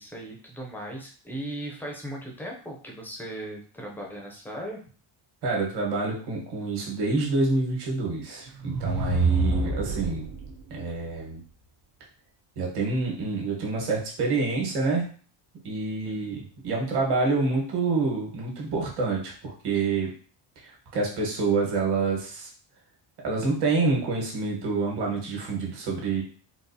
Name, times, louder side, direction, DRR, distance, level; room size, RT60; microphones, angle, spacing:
voice 1, 0.0-4.8 16.0-16.3, right 1 dB, 5° left, -1 dB, 0.4 m, -38 dB
voice 2, 5.4-10.3 10.7-11.4 12.6-15.0 15.6-20.1 20.6-22.5 23.2-26.2, right 3 dB, 55° right, -1 dB, 1.2 m, -27 dB
sound 1, 8.5-10.5, right 3 dB, 75° right, 0.9 m, -26 dB
3.9 x 2.3 x 2.6 m, 0.42 s
cardioid pair, 175°, 47 cm